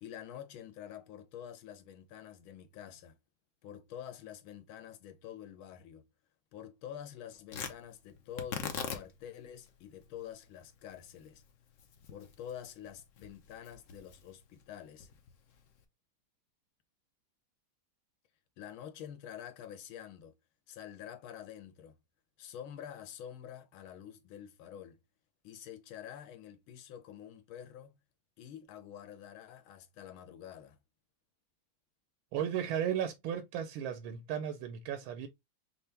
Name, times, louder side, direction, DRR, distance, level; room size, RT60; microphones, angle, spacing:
voice 1, 0.0-3.2 3.6-6.0 6.5-11.4 12.1-15.1 18.6-20.3 20.7-22.0 22.4-25.0 25.4-28.0 28.4-30.8, left 9 dB, 90° left, 1.6 m, -47 dB
Tearing, 7.5-15.8, left 7 dB, 60° left, 0.8 m, -45 dB
voice 2, 32.3-35.3, right 9 dB, 90° right, 1.5 m, -35 dB
5.6 x 2.2 x 3.3 m
omnidirectional pair, 2.2 m